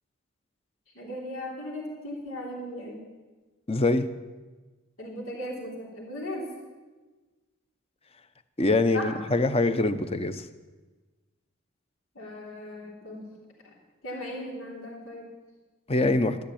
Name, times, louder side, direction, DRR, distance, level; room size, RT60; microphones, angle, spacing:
voice 1, 0.9-3.1 5.0-6.5 8.9-9.2 12.2-13.3 13.6-13.7 14.0-15.3, left 1 dB, 90° left, -1 dB, 3.5 m, -37 dB
voice 2, 3.7-4.1 8.6-10.5 15.9-16.4, left 2 dB, 30° left, 11 dB, 0.7 m, -24 dB
13.0 x 11.5 x 8.6 m, 1.3 s
head